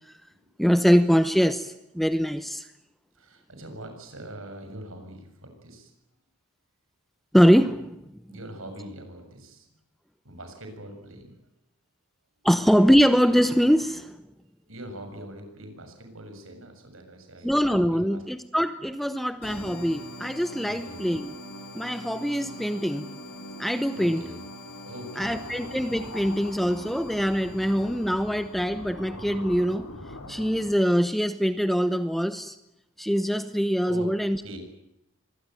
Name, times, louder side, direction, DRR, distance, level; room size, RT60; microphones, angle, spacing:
voice 1, 0.6-2.6 7.3-8.0 12.4-14.2 17.4-21.4 21.7-23.1 23.6-24.2 25.2-29.9 30.3-32.6 33.0-34.4, equal, ahead, 10 dB, 0.9 m, -23 dB
voice 2, 3.2-5.9 8.3-9.7 10.2-11.3 14.7-18.2 20.6-21.0 24.0-24.4 24.8-25.6 33.9-34.1 34.4-34.6, right 1 dB, 65° right, 6 dB, 7.0 m, -42 dB
sound 1, 19.4-28.8, left 1 dB, 60° left, 6.9 m, -42 dB
sound 2, 25.2-30.7, left 1 dB, 80° left, 5.1 m, -42 dB
25.0 x 20.5 x 9.2 m, 0.85 s
head